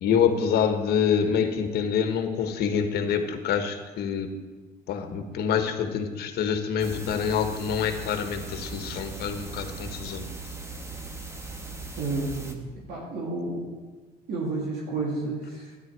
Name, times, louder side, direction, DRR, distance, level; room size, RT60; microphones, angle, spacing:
voice 1, 0.0-4.3 4.9-10.3, left 7 dB, 70° left, 7 dB, 1.4 m, -26 dB
sound 1, 6.8-12.5, right 3 dB, 15° right, 1.4 m, -39 dB
voice 2, 12.0-13.7 14.3-15.7, right 3 dB, 70° right, -3 dB, 2.8 m, -31 dB
12.5 x 10.5 x 4.8 m, 1.3 s
cardioid pair, 110°, 17 cm